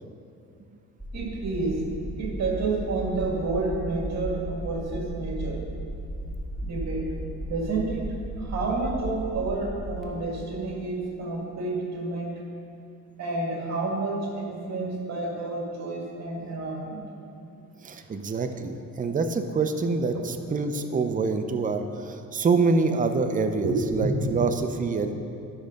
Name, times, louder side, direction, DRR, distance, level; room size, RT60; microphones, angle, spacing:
sound 1, 1.0-10.0, right 1 dB, ahead, 1.8 m, -35 dB
voice 1, 1.1-1.8 2.2-5.7 6.6-7.1 7.4-12.4 13.2-17.0 18.1-18.2 20.1-20.3 23.6-24.7, right 3 dB, 60° right, 0 dB, 2.1 m, -30 dB
voice 2, 17.8-25.1, right 4 dB, 25° right, 7 dB, 0.6 m, -26 dB
11.0 x 6.4 x 5.2 m, 2.5 s
cardioid pair, 90°, 30 cm